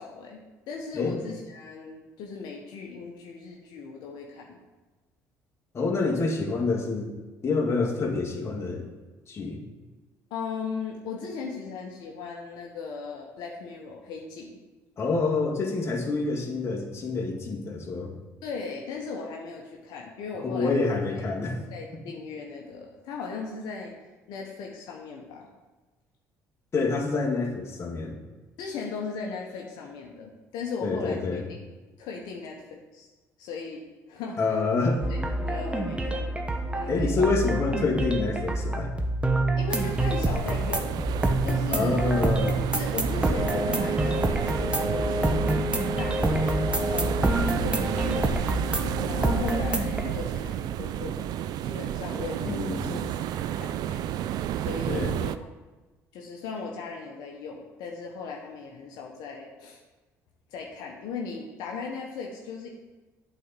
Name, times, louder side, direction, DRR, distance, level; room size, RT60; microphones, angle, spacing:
voice 1, 0.0-4.6 10.3-14.6 18.4-20.9 21.7-23.9 24.3-25.5 28.6-31.2 31.6-31.7 32.0-33.1 33.4-34.4 35.1-36.3 36.7-37.3 37.8-37.9 39.6-42.1 42.7-45.5 46.0-48.6 49.1-54.1 54.6-55.5 56.1-59.8 60.5-62.7, left 5 dB, 75° left, 0 dB, 1.0 m, -37 dB
voice 2, 5.7-7.1 7.4-8.9 9.3-9.6 15.0-18.1 20.4-21.6 26.7-28.2 30.8-31.5 34.4-35.0 36.9-38.9 41.7-42.6 52.4-53.1 54.9-55.1, left 3 dB, 40° left, -1 dB, 1.8 m, -27 dB
sound 1, 35.0-50.0, right 1 dB, 15° right, 1.0 m, -27 dB
sound 2, 39.7-55.4, right 11 dB, 65° right, 0.4 m, -31 dB
8.4 x 4.2 x 6.7 m, 1.2 s
supercardioid pair, 75°, 7 cm